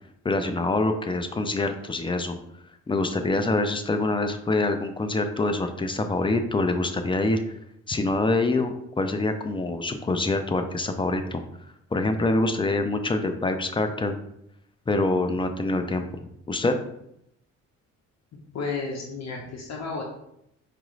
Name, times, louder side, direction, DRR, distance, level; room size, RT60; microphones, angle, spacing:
voice 1, 0.2-2.4 2.9-7.4 7.9-11.4 11.9-14.1 14.9-16.0 16.5-16.7, left 2 dB, 15° left, 7 dB, 0.4 m, -25 dB
voice 2, 18.5-20.0, left 4 dB, 60° left, -1 dB, 0.8 m, -32 dB
4.7 x 2.5 x 3.1 m, 0.78 s
cardioid pair, 90°, 30 cm